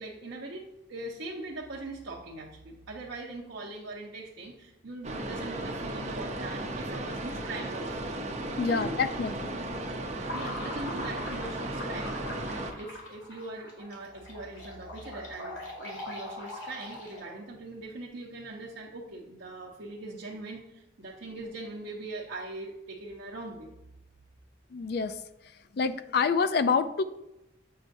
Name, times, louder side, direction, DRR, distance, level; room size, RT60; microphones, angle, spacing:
voice 1, 0.0-8.1 8.6-9.0 10.3-12.1 12.8-23.7, right 2 dB, 75° right, -4 dB, 0.8 m, -41 dB
sound 1, 5.0-12.7, right 1 dB, 35° right, 0.6 m, -35 dB
voice 2, 8.6-9.5 24.7-25.2 25.7-27.0, left 5 dB, 55° left, 12 dB, 0.3 m, -27 dB
sound 2, 10.2-17.4, left 1 dB, 80° left, 1.8 m, -42 dB
7.6 x 5.5 x 2.6 m, 0.94 s
head